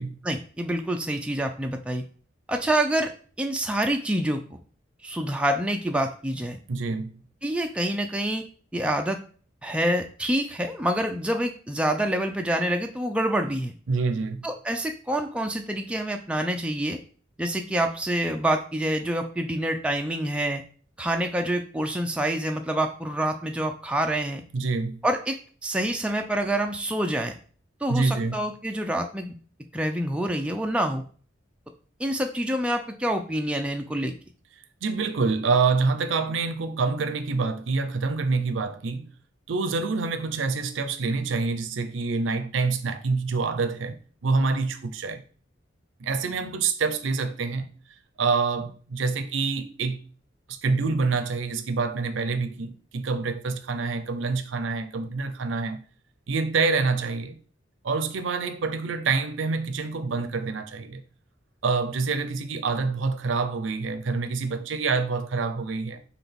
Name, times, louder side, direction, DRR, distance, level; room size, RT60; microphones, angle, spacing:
voice 1, 0.2-2.0 2.5-3.1 3.4-4.6 5.0-6.6 7.4-8.4 8.7-9.2 9.6-13.7 14.4-17.0 17.4-20.6 21.0-24.4 25.0-25.4 25.6-27.4 27.8-29.4 29.7-31.0 32.0-34.1, right 1 dB, 5° right, 0.3 m, -27 dB
voice 2, 6.7-7.2 13.9-14.5 24.5-25.0 27.9-28.5 34.8-39.1 39.5-45.2 46.0-47.7 48.2-50.0 50.5-55.9 56.3-57.4 57.8-61.0 61.6-66.0, right 4 dB, 80° right, 0.5 m, -26 dB
5.7 x 2.3 x 3.4 m
head